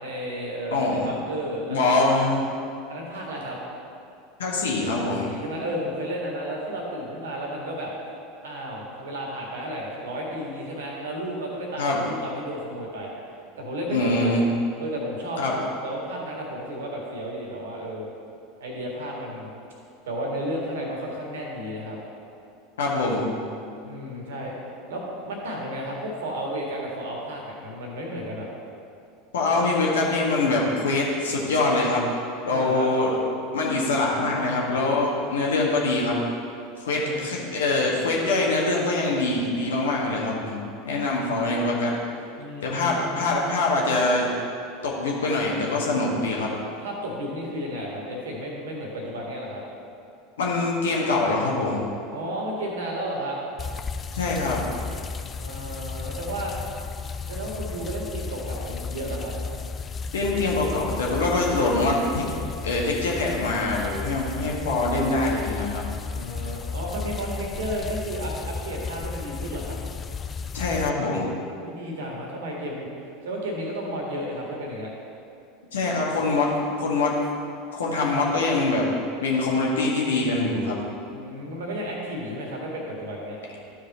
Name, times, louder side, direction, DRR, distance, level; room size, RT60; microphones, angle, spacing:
voice 1, 0.0-2.1 2.9-3.6 5.2-7.9 8.4-13.2 13.6-14.4 14.8-18.1 18.6-19.5 20.1-22.0 23.8-24.5 24.9-28.5 32.5-32.9 36.9-37.3 40.9-41.3 42.4-43.3 46.5-49.6 52.1-53.4 55.4-56.5 57.3-59.3 66.1-69.8 71.6-72.9 73.2-74.9 81.1-83.4, equal, 65° right, -1 dB, 1.8 m, -33 dB
voice 2, 0.7-1.1 1.7-2.4 4.4-5.3 11.8-12.0 13.9-14.5 15.4-15.5 22.8-23.3 29.3-32.0 32.4-33.1 33.5-36.2 36.8-40.6 40.8-41.9 42.6-44.3 44.8-46.5 50.4-51.8 54.1-54.6 60.1-62.3 62.6-65.9 70.5-71.3 75.7-76.5 76.8-77.1 77.7-78.9 79.2-80.7, left 2 dB, 70° left, -3 dB, 1.6 m, -24 dB
sound 1, 53.6-70.9, left 5 dB, 25° left, 0.3 m, -34 dB
12.5 x 4.9 x 4.2 m, 2.5 s
figure-of-eight pair, 80°, 0 cm